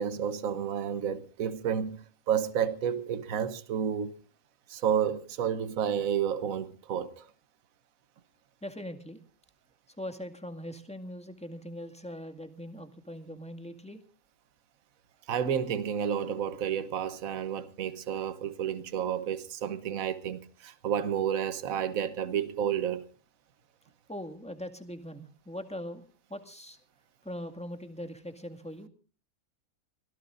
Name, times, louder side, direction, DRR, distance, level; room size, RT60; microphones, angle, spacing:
voice 1, 0.0-4.2 4.7-7.3 15.3-23.1, right 8 dB, 70° right, 1.4 m, -31 dB
voice 2, 8.6-9.2 9.9-14.0 24.1-26.0 26.3-26.8 27.2-28.9, equal, 5° left, 1.9 m, -41 dB
24.5 x 17.5 x 2.5 m
omnidirectional pair, 1.5 m